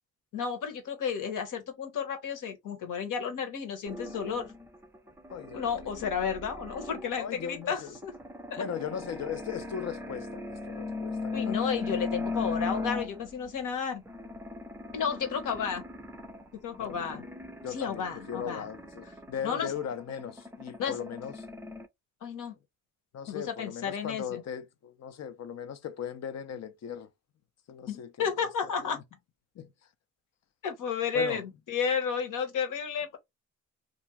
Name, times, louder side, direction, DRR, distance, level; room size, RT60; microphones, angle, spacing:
voice 1, 0.3-4.5 5.5-8.1 8.5-8.6 11.3-14.0 14.9-15.8 16.5-17.3 17.7-18.6 19.4-19.7 20.8-20.9 22.2-22.6 23.3-24.4 27.9-29.0 30.6-33.2, left 6 dB, 65° left, 1.1 m, -32 dB
sound 1, 3.9-13.6 14.1-21.9, left 3 dB, 10° right, 0.5 m, -38 dB
voice 2, 5.3-5.9 7.2-8.0 8.6-11.7 16.8-17.3 17.6-21.3 23.1-27.1 27.7-28.1 28.8-29.0 29.6-29.7 31.1-31.4, left 8 dB, 50° left, 0.7 m, -38 dB
2.5 x 2.4 x 3.0 m
supercardioid pair, 65°, 33 cm